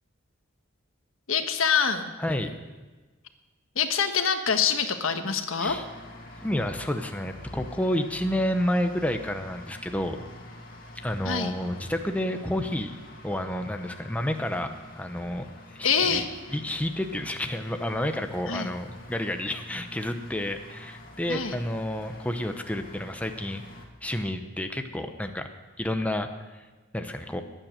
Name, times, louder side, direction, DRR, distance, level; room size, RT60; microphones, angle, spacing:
voice 1, 1.3-2.0 3.7-5.8 11.2-11.5 15.8-16.3 18.5-18.7 21.3-21.5, left 6 dB, 90° left, 7 dB, 1.4 m, -25 dB
voice 2, 2.2-2.6 5.6-5.8 6.4-10.2 10.9-13.0 13.2-15.5 15.7-16.2 16.5-23.6 24.0-25.5 25.8-26.3 26.9-27.4, left 1 dB, 5° left, 6 dB, 0.8 m, -30 dB
sound 1, 5.7-23.9, left 1 dB, 45° left, 2.3 m, -46 dB
21.0 x 9.0 x 6.5 m, 1.3 s
head